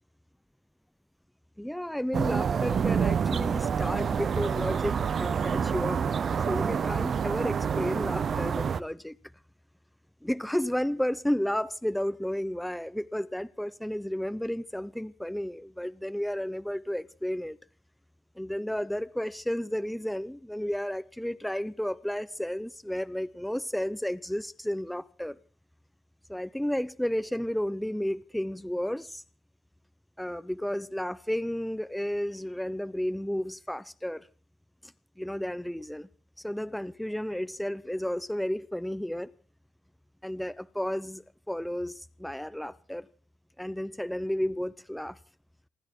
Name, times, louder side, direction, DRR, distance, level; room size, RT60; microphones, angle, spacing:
voice 1, 1.6-6.0 6.5-9.2 10.2-17.6 18.4-25.4 26.3-29.2 30.2-34.3 34.8-34.9 35.2-36.1 36.4-39.3 40.2-43.1 43.6-45.2, equal, 5° left, 0.7 m, -32 dB
sound 1, 2.1-8.8, right 7 dB, 50° right, 0.8 m, -27 dB
27.0 x 11.0 x 4.5 m
cardioid pair, 90°, 0 cm